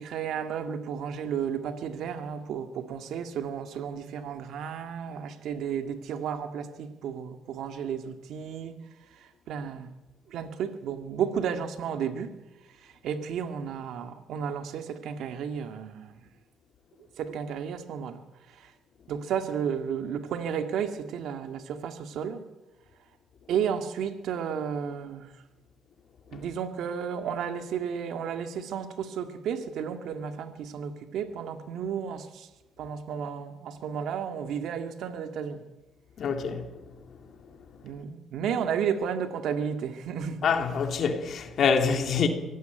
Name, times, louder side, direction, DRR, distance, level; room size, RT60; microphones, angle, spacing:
voice 1, 0.0-8.8 9.2-9.9 10.3-12.3 12.8-16.1 17.2-18.2 18.5-18.7 19.1-22.4 23.5-25.3 26.3-32.5 32.8-35.6 37.8-40.4, right 7 dB, 80° right, 2.0 m, -33 dB
voice 2, 36.2-36.7 40.4-42.3, left 6 dB, 65° left, 3.4 m, -25 dB
24.5 x 17.5 x 9.2 m
cardioid pair, 90°, 0 cm